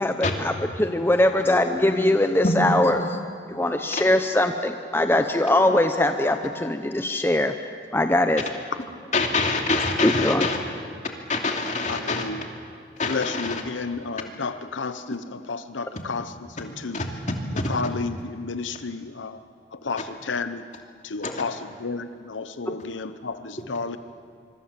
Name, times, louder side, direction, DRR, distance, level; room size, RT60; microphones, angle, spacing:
voice 1, 0.0-3.2 3.5-7.5 7.9-8.4 10.0-10.5 21.2-21.4 22.6-22.8, left 1 dB, 10° left, 0.7 m, -22 dB
voice 2, 9.1-10.6 11.3-12.2 13.0-13.6 16.9-17.0, left 3 dB, 40° left, 2.8 m, -24 dB
voice 3, 11.9-12.4 13.1-17.0 17.7-19.4 19.8-20.6 21.0-24.0, left 4 dB, 85° left, 0.8 m, -31 dB
25.0 x 24.0 x 7.5 m
head